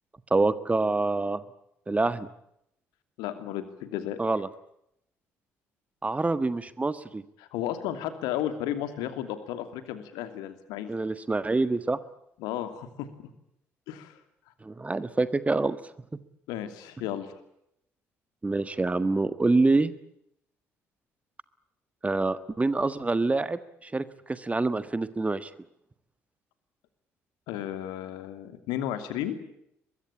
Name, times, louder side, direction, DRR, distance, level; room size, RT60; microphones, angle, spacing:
voice 1, 0.3-1.4 1.9-2.3 4.2-4.5 6.0-7.2 10.9-12.0 14.6-15.8 18.4-19.9 22.0-25.5, right 3 dB, 20° right, 14 dB, 1.5 m, -26 dB
voice 2, 3.2-4.2 7.4-10.9 12.4-13.3 13.9-14.1 16.5-17.3 27.5-29.4, left 11 dB, 65° left, 10 dB, 2.7 m, -33 dB
24.0 x 22.5 x 8.8 m, 0.77 s
figure-of-eight pair, 45°, 8 cm